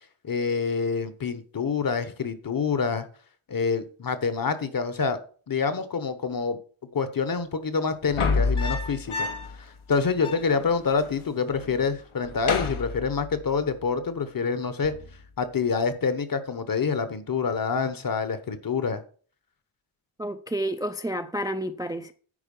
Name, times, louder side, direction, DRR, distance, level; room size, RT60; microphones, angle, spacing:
voice 1, 0.2-3.0 3.5-5.2 5.5-6.6 6.9-9.3 9.6-14.9 15.4-19.0, left 5 dB, 45° left, 1.0 m, -27 dB
sound 1, 8.0-9.6 9.9-10.0 10.2-11.2 11.5-11.8 12.2-13.6 14.8-15.2, left 4 dB, 90° left, 1.3 m, -29 dB
voice 2, 20.2-22.1, right 1 dB, 10° right, 0.4 m, -30 dB
9.9 x 4.6 x 5.4 m
wide cardioid pair, 145°, 48 cm